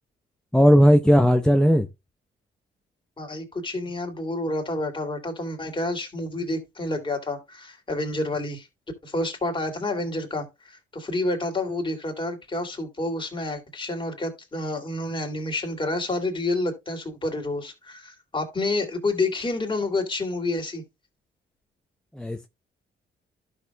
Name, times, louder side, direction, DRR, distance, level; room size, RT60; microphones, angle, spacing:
voice 1, 0.5-1.9 22.1-22.5, equal, 5° left, 0.7 m, -17 dB
voice 2, 3.2-8.7 9.0-20.8, left 2 dB, 25° left, 2.7 m, -29 dB
12.0 x 6.4 x 2.3 m
cardioid pair, 90°, 20 cm